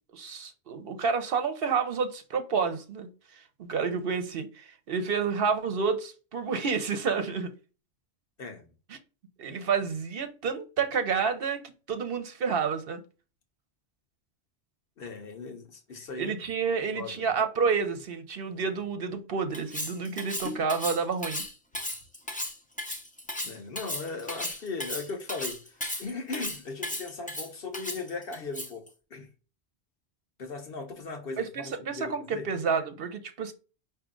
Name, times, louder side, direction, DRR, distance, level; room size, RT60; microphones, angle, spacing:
voice 1, 0.1-3.1 3.6-7.5 8.9-9.0 9.4-11.6 11.9-13.0 16.2-21.4 31.4-33.5, right 5 dB, 65° right, 0.8 m, -29 dB
voice 2, 15.0-16.3 16.9-17.3 23.4-28.8 29.1-29.3 30.4-32.5, left 3 dB, 60° left, 1.1 m, -38 dB
Cutlery silverware, 19.5-28.9, left 1 dB, 10° left, 0.5 m, -35 dB
4.9 x 2.7 x 3.7 m
omnidirectional pair, 1.1 m